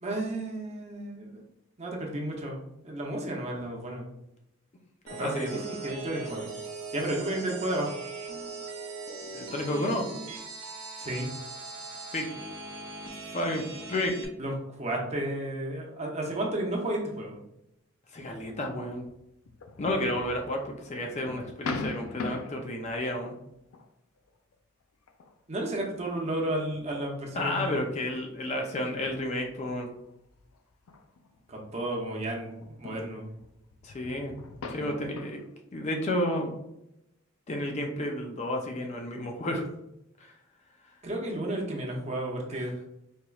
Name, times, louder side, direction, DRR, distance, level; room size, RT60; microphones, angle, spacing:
voice 1, 0.0-1.4 1.8-2.6 2.8-4.1 5.2-6.5 6.9-8.0 11.0-11.3 14.4-14.5 14.8-17.3 25.5-27.8 31.5-33.3 41.0-42.8, right 1 dB, 30° right, 0 dB, 0.7 m, -32 dB
sound 1, 5.1-14.3, right 3 dB, 85° right, 1.0 m, -40 dB
voice 2, 5.2-5.7 9.3-10.0 12.1-12.3 13.1-13.6 13.9-14.1 18.1-19.1 19.8-23.3 27.3-29.9 33.8-34.3 34.7-35.4 35.7-36.5 37.5-39.6 40.2-40.3 42.5-42.7, left 1 dB, 30° left, 2 dB, 0.4 m, -31 dB
sound 2, 18.2-23.8 24.3-24.5 25.1-25.7 26.3-31.9 32.2-35.5, left 3 dB, 85° left, 0.4 m, -42 dB
4.4 x 2.9 x 2.3 m, 0.84 s
head